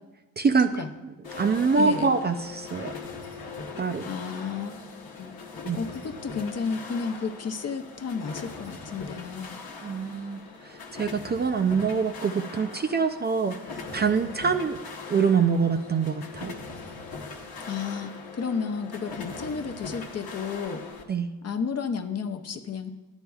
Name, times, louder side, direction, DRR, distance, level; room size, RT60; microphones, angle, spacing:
voice 1, 0.4-0.7 1.3-2.9 3.8-4.0 5.6-5.8 9.8-13.6 13.9-14.8 15.1-16.6 21.1-21.3, right 5 dB, 30° right, 6 dB, 0.4 m, -25 dB
sound 1, 1.2-21.0, left 4 dB, 90° left, 1.0 m, -40 dB
voice 2, 1.7-2.1 4.0-4.8 5.2-5.3 5.7-9.6 17.7-20.8 21.4-22.9, left 5 dB, 45° left, 7 dB, 0.6 m, -32 dB
12.0 x 8.9 x 2.4 m, 1.1 s
cardioid pair, 100°, 35 cm